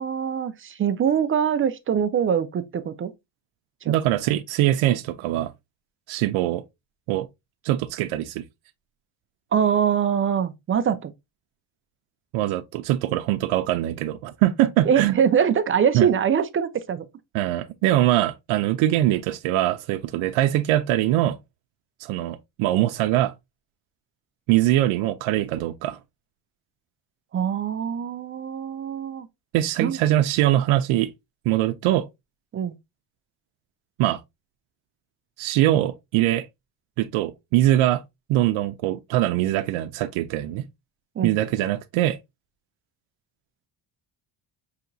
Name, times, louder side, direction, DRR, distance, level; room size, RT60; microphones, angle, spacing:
voice 1, 0.0-3.1 3.8-3.9 9.5-11.1 14.9-17.0 27.3-29.3 29.8-30.0 32.5-32.8 41.2-41.4, right 8 dB, 30° right, 0.3 m, -23 dB
voice 2, 3.9-5.5 6.1-6.6 7.1-7.3 7.6-8.4 12.3-15.2 15.9-16.1 17.3-21.4 22.0-23.3 24.5-26.0 29.5-31.1 31.5-32.1 34.0-34.2 35.4-36.5 37.0-38.0 38.3-40.6 41.2-42.2, right 14 dB, 85° right, 0.5 m, -22 dB
5.7 x 2.8 x 2.6 m
cardioid pair, 140°, 48 cm